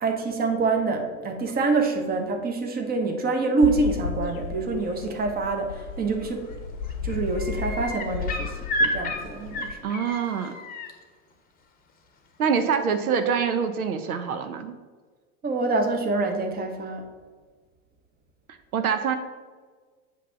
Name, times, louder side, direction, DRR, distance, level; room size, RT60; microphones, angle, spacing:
voice 1, 0.0-6.5 7.0-9.8 15.4-17.0, right 3 dB, 20° right, 4 dB, 1.0 m, -26 dB
sound 1, 3.6-9.7, left 5 dB, 75° left, 0.8 m, -34 dB
sound 2, 6.2-6.5 6.8-10.9 12.6-12.7, left 1 dB, 20° left, 0.9 m, -31 dB
voice 2, 9.8-10.5 12.4-14.8 18.7-19.2, right 6 dB, 75° right, 8 dB, 0.7 m, -25 dB
8.1 x 2.8 x 5.8 m, 1.4 s
figure-of-eight pair, 85°, 43 cm